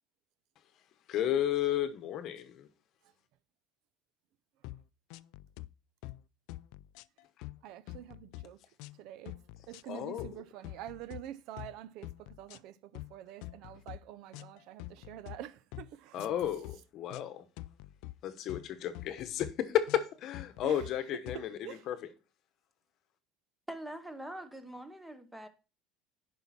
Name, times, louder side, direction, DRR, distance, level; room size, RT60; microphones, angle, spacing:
voice 1, 1.1-2.7 9.9-10.3 16.1-17.4 18.2-22.1, left 11 dB, 45° left, 1.0 m, -33 dB
sound 1, 4.6-4.8 5.1-5.7 6.0-6.2 6.5-7.6 7.9-8.5 8.8-9.0 9.3-9.8 10.2-10.4 10.6-11.2 11.6-11.8 12.0-12.6 12.9-13.1 13.4-14.0 14.3-15.4 15.7-15.9 16.2-16.8 17.1-17.3 17.6-18.1 18.5-18.7 18.9-19.5 19.9-20.1 20.3-20.9 21.3-21.4, left 18 dB, 65° left, 0.3 m, -45 dB
voice 2, 7.6-8.6 9.0-9.4 9.7-16.2 20.6-20.8 21.3-21.8, right 12 dB, 60° right, 0.5 m, -47 dB
voice 3, 23.7-25.5, right 1 dB, 5° right, 0.9 m, -43 dB
10.5 x 5.6 x 4.1 m
cardioid pair, 155°, 0 cm